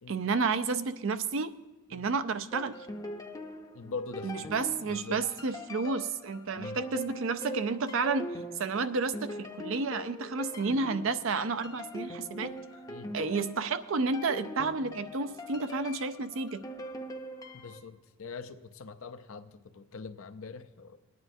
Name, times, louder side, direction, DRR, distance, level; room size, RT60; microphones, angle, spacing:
voice 1, 0.1-1.6 1.9-2.7 4.2-12.5 13.1-16.6, right 4 dB, 70° right, 12 dB, 0.5 m, -31 dB
sound 1, 2.5-17.8, equal, 15° left, 0.6 m, -42 dB
voice 2, 3.7-5.2 6.6-6.8 12.9-13.1 17.5-21.0, left 4 dB, 80° left, 9 dB, 0.7 m, -43 dB
21.0 x 9.4 x 2.7 m, 1.2 s
head